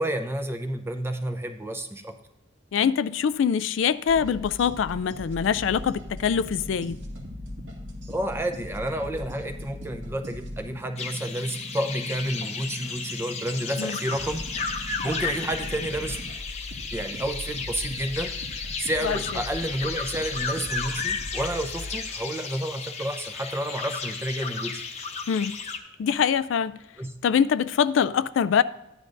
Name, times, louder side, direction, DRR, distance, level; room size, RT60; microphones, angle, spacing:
voice 1, 0.0-2.1 8.1-14.5 14.8-16.2 16.9-18.3 18.8-24.8 27.0-27.1, right 1 dB, 10° right, 0.7 m, -30 dB
voice 2, 2.7-7.0 13.8-14.0 19.0-19.2 25.3-25.6 26.0-26.8 27.2-28.6, left 7 dB, 80° left, 0.3 m, -24 dB
sound 1, 4.1-10.7 14.1-22.0, left 1 dB, 90° right, 2.1 m, -40 dB
sound 2, 5.4-16.3, equal, 45° right, 1.2 m, -45 dB
sound 3, 11.0-25.8, left 5 dB, 35° left, 0.9 m, -34 dB
13.5 x 9.7 x 2.6 m
head